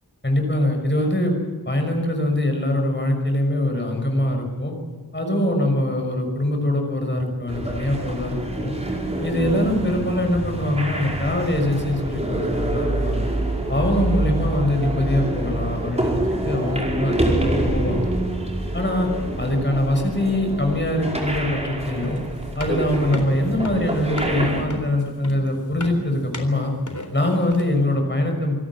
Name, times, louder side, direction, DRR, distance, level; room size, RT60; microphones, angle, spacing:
voice 1, 0.2-1.4 1.7-4.7 5.1-8.7 9.2-13.3 13.7-18.1 18.7-19.1 19.4-22.2 22.6-26.7 27.1-28.5, left 1 dB, 30° left, 3 dB, 6.0 m, -23 dB
sound 1, 7.5-24.6, right 1 dB, 15° right, 5.1 m, -26 dB
sound 2, 22.0-27.9, left 2 dB, 50° left, 3.9 m, -34 dB
27.0 x 18.0 x 7.6 m, 1.4 s
wide cardioid pair, 65°, 38 cm